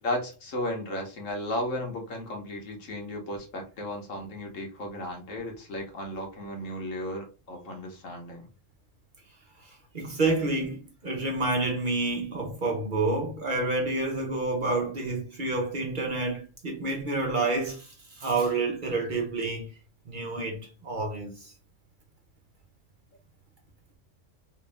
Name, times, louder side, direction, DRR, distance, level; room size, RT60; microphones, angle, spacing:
voice 1, 0.0-8.5, left 1 dB, 75° left, 1.4 m, -34 dB
voice 2, 9.9-17.9 18.2-19.7 20.1-21.3, right 3 dB, 45° right, 0.9 m, -28 dB
3.3 x 2.6 x 3.2 m
omnidirectional pair, 1.3 m